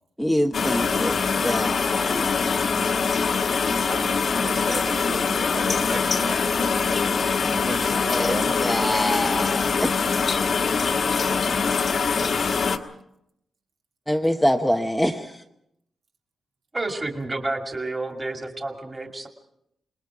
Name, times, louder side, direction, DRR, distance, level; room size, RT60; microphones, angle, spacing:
voice 1, 0.2-2.3 8.1-8.3 8.6-9.9 14.1-15.4, equal, ahead, 4 dB, 0.9 m, -25 dB
sound 1, 0.5-12.8, left 5 dB, 50° left, 1.4 m, -23 dB
voice 2, 3.8-8.7, right 4 dB, 70° right, 1 dB, 2.9 m, -37 dB
voice 3, 16.7-19.3, right 2 dB, 20° right, 3 dB, 2.3 m, -30 dB
27.0 x 21.0 x 4.8 m, 0.79 s
wide cardioid pair, 165°, 0 cm